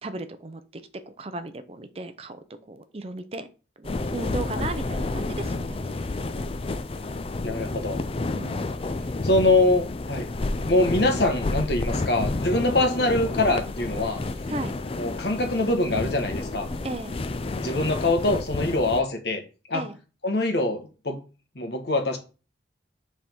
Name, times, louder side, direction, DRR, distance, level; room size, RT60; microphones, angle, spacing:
voice 1, 0.0-3.5 3.8-6.1 8.3-8.6 8.9-9.2 14.5-14.7 16.8-17.2 19.7-20.0, right 2 dB, 30° right, 10 dB, 0.5 m, -36 dB
sound 1, 3.8-19.0, left 2 dB, 30° left, 0.4 m, -30 dB
voice 2, 7.4-8.0 9.2-10.3 10.6-14.2 15.0-16.7 17.6-19.4 19.7-19.8 20.2-21.2 21.5-22.2, left 2 dB, 60° left, 5 dB, 1.3 m, -24 dB
7.5 x 3.5 x 4.5 m, 0.35 s
head